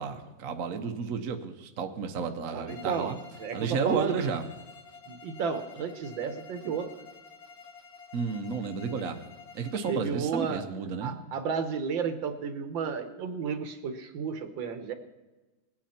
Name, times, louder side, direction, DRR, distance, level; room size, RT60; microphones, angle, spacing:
voice 1, 0.0-3.2 3.5-4.4 8.1-9.2 9.5-11.2, right 5 dB, 50° right, 5 dB, 1.2 m, -32 dB
voice 2, 2.5-3.1 3.4-4.3 5.1-6.9 9.9-10.6 11.0-14.9, right 6 dB, 75° right, 8 dB, 1.8 m, -32 dB
Bowed string instrument, 2.7-10.1, left 5 dB, 75° left, 2.2 m, -50 dB
20.5 x 8.8 x 4.3 m, 1.1 s
omnidirectional pair, 2.1 m